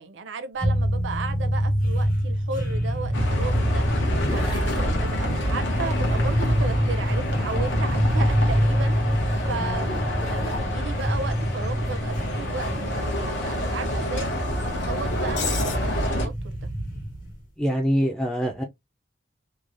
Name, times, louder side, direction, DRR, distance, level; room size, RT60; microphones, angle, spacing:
voice 1, 0.0-4.0 4.3-9.1 9.5-16.7, right 4 dB, 80° right, 0.5 m, -35 dB
sound 1, 0.6-17.4, equal, 50° left, 1.2 m, -27 dB
Bus, 3.1-16.3, equal, 75° left, 0.9 m, -27 dB
Zipper (clothing), 3.6-8.1 8.4-11.1 12.7-13.0, left 2 dB, 30° left, 0.9 m, -42 dB
voice 2, 17.6-18.6, equal, 5° left, 0.3 m, -24 dB
3.1 x 2.0 x 2.4 m
head